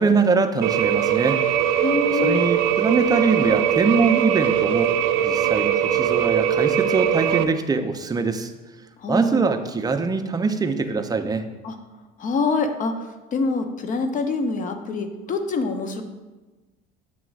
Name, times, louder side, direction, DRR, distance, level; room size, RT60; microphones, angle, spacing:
voice 1, 0.0-1.7 2.2-4.9 5.2-8.5 9.1-11.4, right 4 dB, 20° right, 7 dB, 0.5 m, -23 dB
sound 1, 0.6-7.4, right 9 dB, 80° right, 0.6 m, -21 dB
voice 2, 1.8-2.4 9.0-9.6 11.6-11.8 12.2-13.0 13.3-16.0, left 3 dB, 40° left, 7 dB, 0.8 m, -25 dB
7.6 x 3.0 x 6.1 m, 1.2 s
cardioid pair, 110°, 21 cm